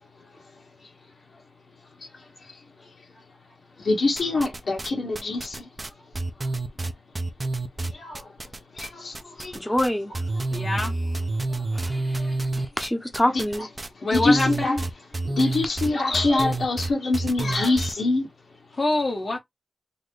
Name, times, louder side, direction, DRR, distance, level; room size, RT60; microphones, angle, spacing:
voice 1, 3.8-5.7 8.0-8.2 8.8-9.5 14.1-14.8 15.3-18.2, left 2 dB, 75° left, 1.6 m, -24 dB
sound 1, 4.2-4.9 5.1-8.9 9.1-9.9 10.1-17.9, right 2 dB, 35° right, 0.7 m, -29 dB
voice 2, 9.5-10.1 11.7-13.7 15.4-15.7, left 1 dB, 15° left, 0.9 m, -27 dB
voice 3, 10.5-10.9 14.0-14.8 18.8-19.4, left 2 dB, 55° left, 1.0 m, -25 dB
3.9 x 2.1 x 3.2 m
cardioid pair, 50°, 0 cm